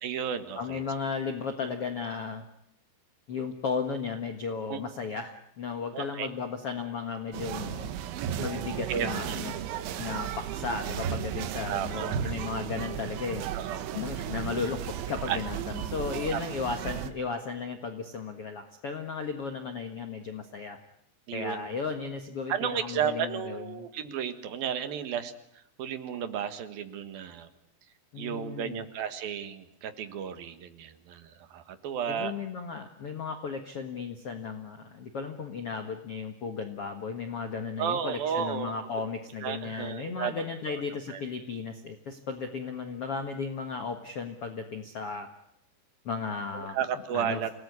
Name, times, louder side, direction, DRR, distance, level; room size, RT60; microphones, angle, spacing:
voice 1, 0.0-0.8 4.7-4.8 5.9-6.3 8.9-10.0 11.7-12.2 13.5-14.0 15.3-15.4 16.3-16.4 21.3-21.7 22.5-25.3 25.8-27.5 28.2-32.3 37.8-38.7 39.4-40.3 40.7-40.8 41.1-41.2 46.5-47.5, right 8 dB, 60° right, 10 dB, 3.0 m, -33 dB
voice 2, 0.6-2.4 3.3-9.5 10.0-13.4 13.9-20.8 21.3-23.9 28.1-28.8 32.1-45.3 46.0-46.8 47.1-47.5, left 5 dB, 55° left, 6 dB, 1.6 m, -35 dB
sound 1, 7.3-17.1, right 10 dB, 90° right, 3.8 m, -34 dB
27.5 x 19.0 x 9.8 m, 0.75 s
omnidirectional pair, 5.2 m